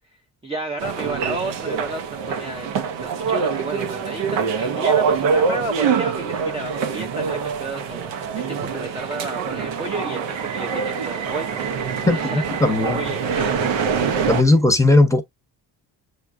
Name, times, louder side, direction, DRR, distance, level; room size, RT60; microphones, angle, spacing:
voice 1, 0.4-13.7, right 3 dB, 15° right, 0.5 m, -32 dB
sound 1, 0.8-14.4, right 6 dB, 80° right, 0.8 m, -25 dB
sound 2, 9.0-14.0, right 6 dB, 45° right, 0.8 m, -35 dB
voice 2, 12.1-13.1 14.3-15.2, left 2 dB, 5° left, 0.9 m, -17 dB
6.5 x 2.3 x 2.4 m
supercardioid pair, 60°, 43 cm